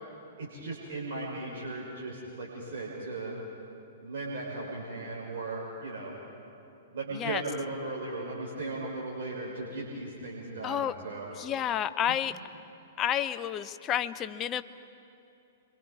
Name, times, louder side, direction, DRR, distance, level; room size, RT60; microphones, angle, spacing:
voice 1, 0.4-3.3 4.0-6.1 6.9-11.3 12.1-12.2, right 2 dB, 55° right, -4 dB, 4.5 m, -37 dB
voice 2, 11.3-12.3 13.0-14.6, left 10 dB, 25° left, 12 dB, 0.7 m, -30 dB
27.5 x 24.0 x 4.8 m, 2.7 s
figure-of-eight pair, 110°, 0 cm